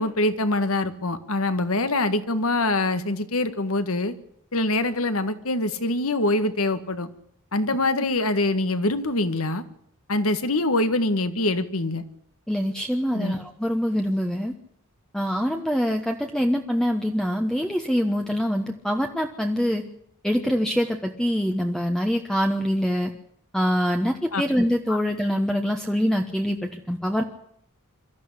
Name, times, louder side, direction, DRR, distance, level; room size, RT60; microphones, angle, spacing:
voice 1, 0.0-4.1 4.5-7.1 7.5-9.6 10.1-12.0 13.1-13.4 24.3-24.4 24.9-25.0, left 2 dB, 70° left, 11 dB, 1.7 m, -24 dB
voice 2, 12.5-14.5 15.1-19.8 20.2-23.1 23.5-27.2, equal, 5° left, 3 dB, 1.1 m, -24 dB
23.5 x 13.5 x 9.9 m, 0.72 s
head